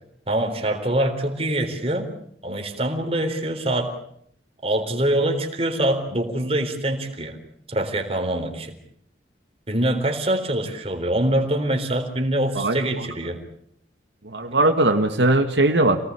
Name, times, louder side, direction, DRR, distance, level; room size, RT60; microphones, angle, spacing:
voice 1, 0.3-2.1 2.4-3.9 4.6-7.4 7.7-8.7 9.7-13.4, right 1 dB, 35° right, 4 dB, 3.9 m, -24 dB
voice 2, 14.2-16.0, right 2 dB, 80° right, 5 dB, 2.0 m, -19 dB
27.5 x 19.0 x 8.5 m, 0.68 s
head